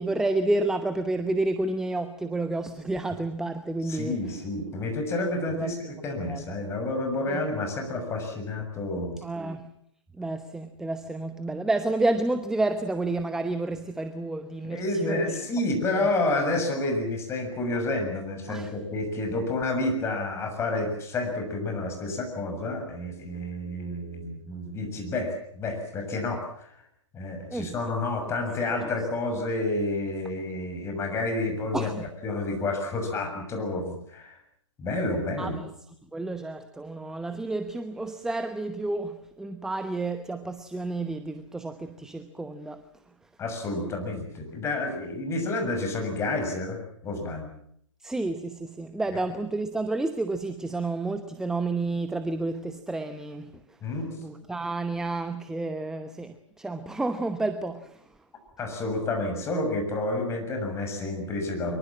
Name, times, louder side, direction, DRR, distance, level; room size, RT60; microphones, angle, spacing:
voice 1, 0.0-4.2 5.5-5.9 6.3-6.4 7.3-7.4 9.2-9.7 10.2-15.4 15.9-16.1 18.5-18.7 27.5-27.7 31.7-32.0 35.4-35.7 36.1-42.8 48.0-53.6 54.2-58.0, right 2 dB, 5° right, 0.9 m, -30 dB
voice 2, 3.8-9.2 14.6-26.7 27.1-31.9 32.2-34.4 34.8-35.6 43.4-47.5 53.8-54.1 58.6-61.8, left 2 dB, 15° left, 6.9 m, -30 dB
24.0 x 23.0 x 7.5 m
figure-of-eight pair, 125°, 16 cm